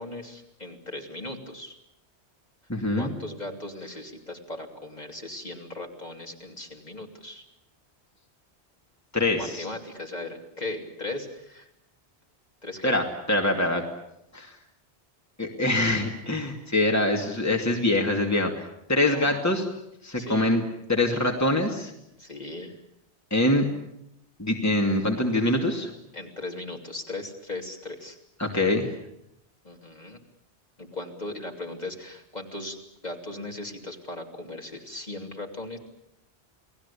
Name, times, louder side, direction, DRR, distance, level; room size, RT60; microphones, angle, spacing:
voice 1, 0.0-1.8 2.9-7.4 9.3-11.7 12.6-12.9 19.1-19.7 20.1-20.5 22.2-22.7 26.1-28.2 29.6-30.2 30.8-32.8 33.0-35.8, left 2 dB, 40° left, 2 dB, 3.3 m, -38 dB
voice 2, 2.7-3.1 9.1-9.7 12.8-13.8 14.3-14.5 15.4-18.6 18.9-19.6 20.0-20.6 20.9-21.9 23.3-23.6 24.4-25.9 28.4-28.9, left 1 dB, 15° left, 2 dB, 2.6 m, -24 dB
29.5 x 19.5 x 8.5 m, 0.80 s
omnidirectional pair, 1.1 m